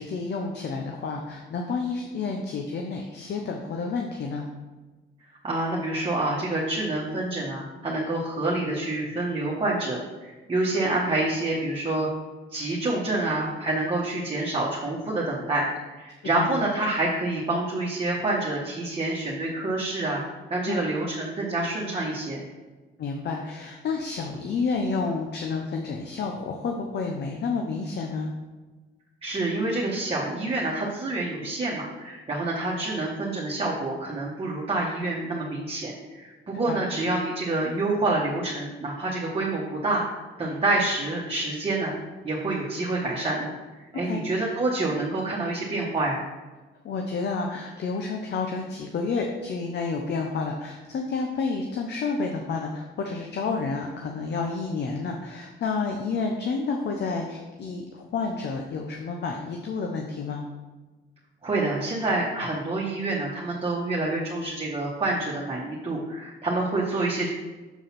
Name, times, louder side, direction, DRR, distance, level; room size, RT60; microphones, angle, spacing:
voice 1, 0.0-4.5 16.4-16.5 20.7-20.8 23.0-28.3 36.7-36.9 44.0-44.2 46.8-60.5, left 4 dB, 60° left, 2 dB, 0.8 m, -30 dB
voice 2, 5.4-12.1 12.5-20.2 20.5-22.4 29.2-42.0 42.2-43.5 43.9-46.2 61.4-67.3, right 2 dB, 30° right, -5 dB, 1.5 m, -27 dB
7.2 x 3.9 x 5.9 m, 1.2 s
cardioid pair, 90°, 20 cm